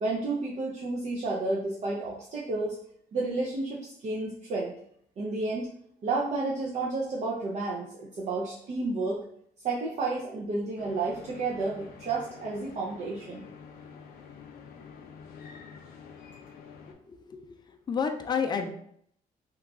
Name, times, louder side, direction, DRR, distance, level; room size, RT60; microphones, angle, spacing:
voice 1, 0.0-2.8 3.1-4.7 5.2-5.7 6.0-9.2 9.6-13.4, right 3 dB, 50° right, -4 dB, 0.6 m, -31 dB
sound 1, 10.8-16.9, left 6 dB, 75° left, 0.6 m, -48 dB
voice 2, 16.9-17.6 17.9-18.7, left 6 dB, 30° left, 5 dB, 0.4 m, -30 dB
3.0 x 2.3 x 3.6 m, 0.67 s
cardioid pair, 120°, 15 cm